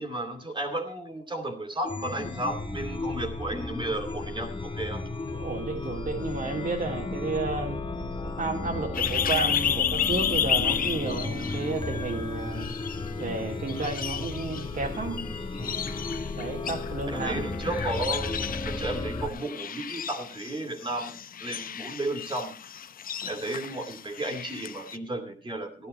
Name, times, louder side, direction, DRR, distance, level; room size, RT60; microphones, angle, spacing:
voice 1, 0.0-5.0 17.1-21.2 21.4-22.5 23.3-25.9, right 1 dB, 25° right, 2.6 m, -33 dB
Chime, 1.8-19.3, left 2 dB, 25° left, 1.7 m, -34 dB
voice 2, 5.3-7.8 8.4-12.7 13.2-15.8 16.4-17.4 23.2-23.3, right 3 dB, 45° right, 2.5 m, -32 dB
sound 1, 8.9-12.1 12.5-13.4 13.7-25.0, left 8 dB, 45° left, 0.7 m, -32 dB
14.5 x 11.5 x 4.2 m
cardioid pair, 90°, 20 cm